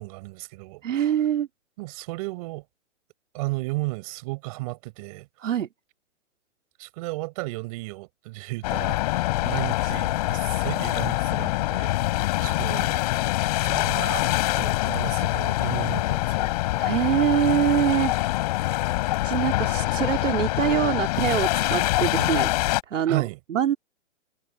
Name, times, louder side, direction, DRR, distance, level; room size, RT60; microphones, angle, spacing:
voice 1, 0.0-1.1 1.8-2.6 3.3-5.3 6.8-11.9 12.4-13.0 13.6-16.5 23.1-23.4, right 23 dB, 30° right, 4.9 m, -34 dB
voice 2, 0.8-1.5 5.4-5.7 16.8-18.1 19.2-22.5 22.9-23.8, right 9 dB, 80° right, 2.4 m, -24 dB
sound 1, 8.6-22.8, left 18 dB, 35° left, 5.2 m, -25 dB
hypercardioid pair, 170°, 37 cm